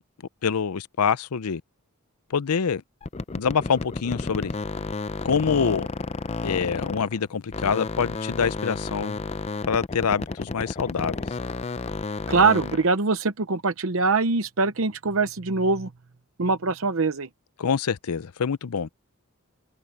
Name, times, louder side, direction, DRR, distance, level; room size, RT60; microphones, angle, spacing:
voice 1, 0.4-1.6 2.3-2.8 3.3-4.5 5.2-5.9 6.4-9.2 9.7-11.2 17.6-18.9, left 6 dB, 90° left, 0.6 m, -25 dB
sound 1, 3.0-7.2 7.5-12.9, left 3 dB, 30° left, 0.5 m, -32 dB
voice 2, 12.3-15.9 16.4-17.3, right 4 dB, 65° right, 0.8 m, -23 dB
head